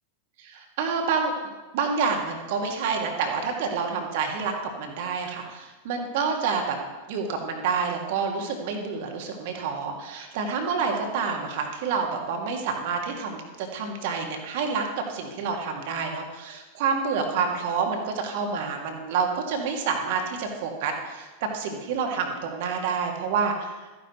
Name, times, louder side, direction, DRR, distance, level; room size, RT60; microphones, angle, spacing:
voice 1, 0.4-1.3 1.7-6.8 7.1-21.3 21.5-23.7, right 5 dB, 50° right, 3 dB, 1.8 m, -28 dB
14.0 x 10.0 x 3.0 m, 1.2 s
figure-of-eight pair, 90°, 0 cm